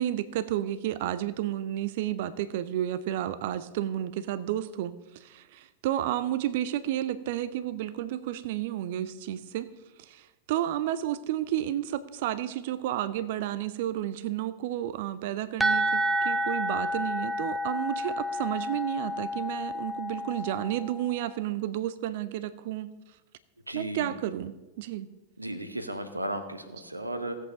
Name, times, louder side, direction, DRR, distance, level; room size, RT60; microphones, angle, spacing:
voice 1, 0.0-9.7 10.0-22.9 23.7-25.1, right 12 dB, 50° right, 16 dB, 0.5 m, -31 dB
sound 1, 15.6-21.2, equal, 5° right, 1.0 m, -30 dB
voice 2, 23.7-24.1 25.4-27.4, right 1 dB, 85° right, 9 dB, 1.1 m, -35 dB
17.0 x 8.1 x 5.2 m, 1.1 s
figure-of-eight pair, 90°, 0 cm